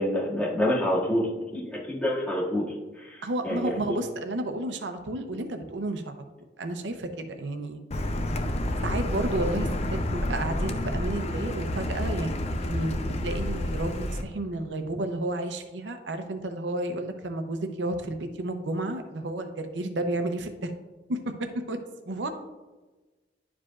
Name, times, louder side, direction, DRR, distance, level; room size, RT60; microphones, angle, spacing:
voice 1, 0.0-4.0, left 1 dB, 5° left, -7 dB, 2.0 m, -28 dB
voice 2, 3.2-6.2 6.6-7.8 8.8-12.3 12.6-20.7 21.1-21.8 22.1-22.3, right 2 dB, 85° right, 7 dB, 0.6 m, -31 dB
Car, 7.9-14.2, left 1 dB, 35° left, 0.5 m, -29 dB
11.0 x 4.9 x 2.4 m, 1.2 s
head